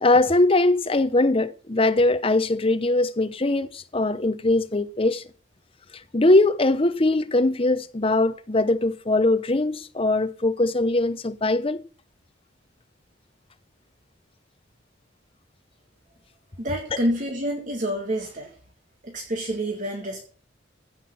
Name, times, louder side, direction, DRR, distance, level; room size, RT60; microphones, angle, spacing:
voice 1, 0.0-5.2 6.1-11.8, left 2 dB, 30° left, 0.7 m, -21 dB
voice 2, 16.6-18.5 19.0-20.2, equal, 45° right, 2.0 m, -28 dB
15.5 x 5.8 x 7.1 m
head